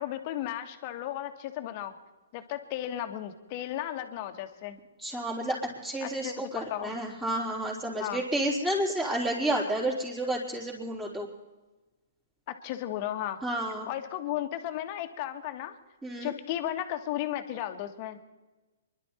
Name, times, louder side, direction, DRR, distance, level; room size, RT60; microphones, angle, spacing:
voice 1, 0.0-2.0 2.3-4.8 6.0-6.9 8.0-8.2 12.5-13.4 13.9-15.8 16.2-18.2, left 12 dB, 40° left, 7 dB, 1.7 m, -34 dB
voice 2, 5.0-5.6 5.8-11.3 13.4-13.9 16.0-16.3, right 1 dB, 10° right, -7 dB, 3.7 m, -30 dB
25.0 x 11.5 x 4.5 m, 1.2 s
hypercardioid pair, 135°, 0 cm